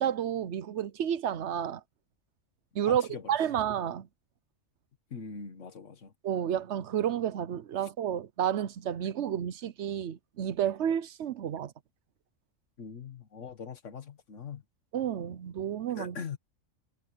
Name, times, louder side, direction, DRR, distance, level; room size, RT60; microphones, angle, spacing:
voice 1, 0.0-1.8 2.7-4.1 6.2-11.7 14.9-16.2, right 9 dB, 65° right, 0.9 m, -31 dB
voice 2, 2.9-3.3 5.1-6.1 12.8-14.6 16.0-16.4, left 6 dB, 70° left, 1.8 m, -41 dB
omnidirectional pair, 1.3 m